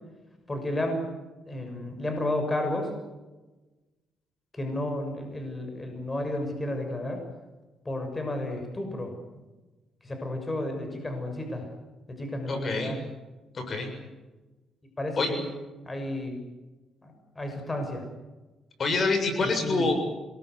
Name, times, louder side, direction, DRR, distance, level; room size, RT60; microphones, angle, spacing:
voice 1, 0.5-1.1 1.5-2.9 4.5-7.2 7.8-9.1 10.0-11.7 12.1-13.0 15.0-15.5 15.9-16.4 17.0-18.1 19.6-19.9, left 1 dB, 20° left, 5 dB, 6.6 m, -32 dB
voice 2, 12.5-12.9 13.5-13.9 15.2-15.3 18.8-19.9, left 3 dB, 45° left, 6 dB, 7.2 m, -26 dB
26.5 x 22.0 x 8.2 m, 1.2 s
cardioid pair, 90°, 0 cm